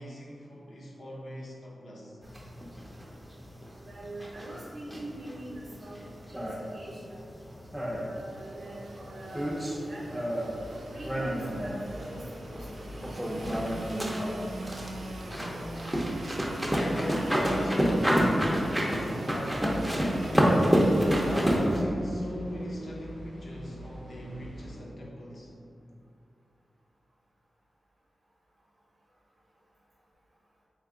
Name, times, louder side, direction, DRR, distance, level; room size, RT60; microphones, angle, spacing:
voice 1, 0.0-2.2 15.0-15.8 16.7-19.8 21.2-25.5, equal, 65° left, -3 dB, 0.7 m, -40 dB
sound 1, 2.2-21.8, equal, 5° right, 0.5 m, -30 dB
voice 2, 3.8-6.0 6.3-6.5 6.7-7.2 7.7-10.3 10.9-11.3 11.6-14.1, right 1 dB, 55° right, -5 dB, 0.7 m, -44 dB
Engine / Sawing, 7.8-21.6, right 1 dB, 90° right, 0.4 m, -40 dB
sound 2, 10.5-24.8, equal, 85° left, 1.2 m, -45 dB
3.7 x 2.7 x 3.6 m, 2.5 s
wide cardioid pair, 125°, 0 cm